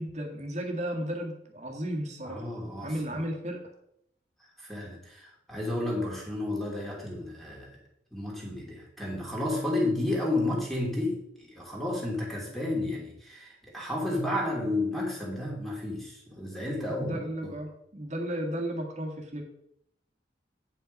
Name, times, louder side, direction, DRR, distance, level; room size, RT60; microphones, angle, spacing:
voice 1, 0.0-2.5 2.8-3.6 16.9-19.5, right 1 dB, 40° right, 2 dB, 1.9 m, -34 dB
voice 2, 2.2-3.2 4.6-7.8 8.1-17.5, left 1 dB, ahead, -3 dB, 2.8 m, -32 dB
9.2 x 5.7 x 5.3 m, 0.76 s
head